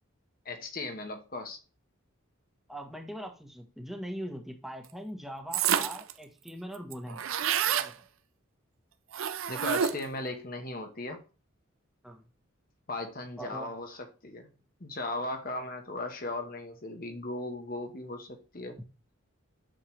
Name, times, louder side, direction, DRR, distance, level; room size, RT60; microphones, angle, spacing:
voice 1, 0.4-1.6 9.5-11.2 12.9-14.5 14.8-18.8, left 2 dB, 45° left, 1.2 m, -37 dB
voice 2, 2.7-7.2 7.7-8.0 12.0-12.2 13.4-13.7, equal, ahead, 1.2 m, -41 dB
sound 1, 5.5-6.1 6.5-6.6 6.7-7.9 9.1-10.2, right 8 dB, 75° right, 0.6 m, -28 dB
8.8 x 6.7 x 3.2 m
head